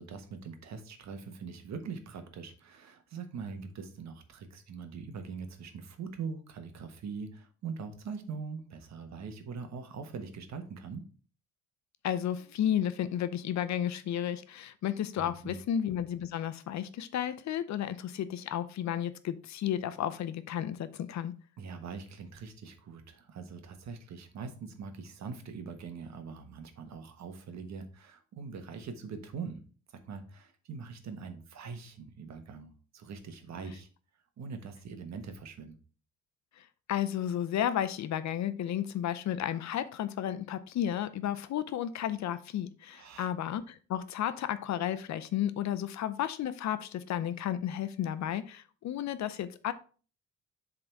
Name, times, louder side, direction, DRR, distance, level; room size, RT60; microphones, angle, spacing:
voice 1, 0.0-11.0 15.2-15.6 21.6-29.6 30.0-33.9 34.4-35.8 42.9-43.3, right 5 dB, 65° right, 7 dB, 1.3 m, -42 dB
voice 2, 12.0-21.3 36.9-49.7, left 10 dB, 65° left, 13 dB, 0.7 m, -33 dB
7.5 x 3.9 x 4.6 m, 0.39 s
cardioid pair, 90°, 30 cm